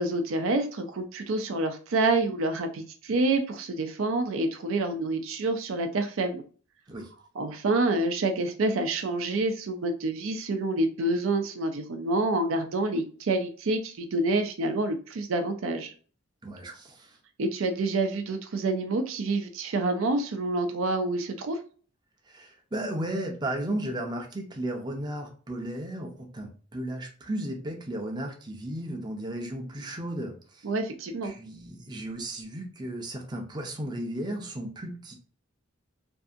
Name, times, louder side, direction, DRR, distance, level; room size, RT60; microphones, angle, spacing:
voice 1, 0.0-6.4 7.4-15.9 17.4-21.6 30.6-31.3, right 2 dB, 75° right, 6 dB, 0.5 m, -27 dB
voice 2, 16.4-17.2 22.3-30.6 31.2-35.1, right 1 dB, 20° right, 2 dB, 0.5 m, -35 dB
2.6 x 2.5 x 2.4 m, 0.40 s
head